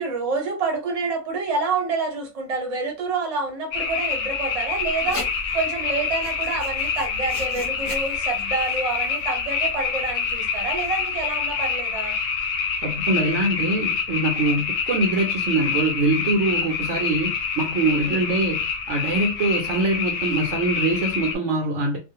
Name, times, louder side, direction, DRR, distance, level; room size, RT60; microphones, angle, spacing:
voice 1, 0.0-12.2 17.9-18.5, right 4 dB, 35° right, 0.7 m, -28 dB
sound 1, 3.7-21.3, left 6 dB, 70° left, 0.9 m, -27 dB
Writing, 4.8-11.1, left 1 dB, 30° left, 0.6 m, -40 dB
voice 2, 12.8-22.0, right 2 dB, 65° right, 0.9 m, -23 dB
2.4 x 2.1 x 2.7 m
omnidirectional pair, 1.4 m